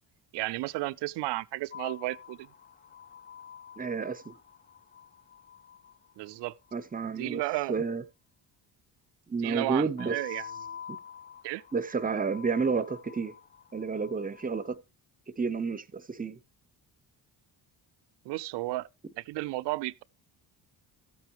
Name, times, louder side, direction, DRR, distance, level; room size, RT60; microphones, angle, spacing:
voice 1, 0.3-2.5 6.2-6.5 7.1-7.7 9.4-10.8 11.4-11.6 18.3-18.9 19.2-20.0, right 19 dB, 80° right, 0.5 m, -33 dB
sound 1, 1.7-7.0 10.0-14.7, left 8 dB, 25° left, 0.5 m, -48 dB
voice 2, 3.8-4.3 6.7-7.4 7.7-8.0 9.3-10.2 11.7-13.3 13.7-14.8 15.4-16.4, right 5 dB, 20° right, 0.7 m, -30 dB
14.0 x 8.4 x 3.0 m
cardioid pair, 100°, 41 cm